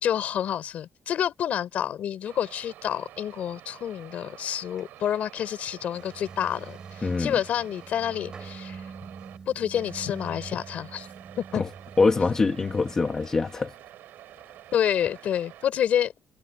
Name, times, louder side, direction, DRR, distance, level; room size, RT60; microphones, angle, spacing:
voice 1, 0.0-8.8 9.5-11.1 11.4-11.6 14.7-16.1, left 10 dB, 55° left, 3.9 m, -28 dB
sound 1, 2.3-9.4 9.7-15.7, right 13 dB, 90° right, 7.2 m, -48 dB
sound 2, 5.9-13.1, right 5 dB, 25° right, 3.6 m, -44 dB
voice 2, 7.0-7.4 11.5-11.7 12.0-13.7, left 4 dB, 20° left, 1.7 m, -24 dB
cardioid pair, 180°, 3 cm